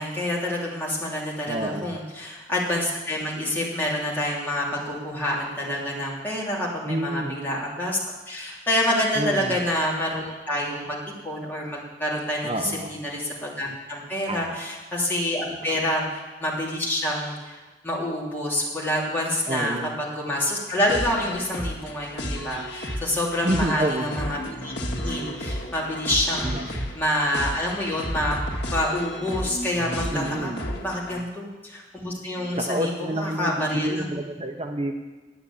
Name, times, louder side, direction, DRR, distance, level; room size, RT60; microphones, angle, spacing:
voice 1, 0.0-8.0 8.3-11.0 11.2-17.6 17.8-24.7 25.0-28.4 28.6-30.5 30.8-34.2, left 1 dB, 10° left, -5 dB, 3.2 m, -27 dB
voice 2, 1.5-2.0 6.9-7.4 9.1-9.6 12.4-12.9 14.3-14.5 15.7-15.9 19.5-20.0 23.4-24.1 26.4-26.9 30.1-30.7 32.6-34.9, right 1 dB, 30° right, 3 dB, 0.8 m, -29 dB
sound 1, 20.9-31.2, equal, 70° left, 1.8 m, -32 dB
11.0 x 8.9 x 8.4 m, 1.2 s
head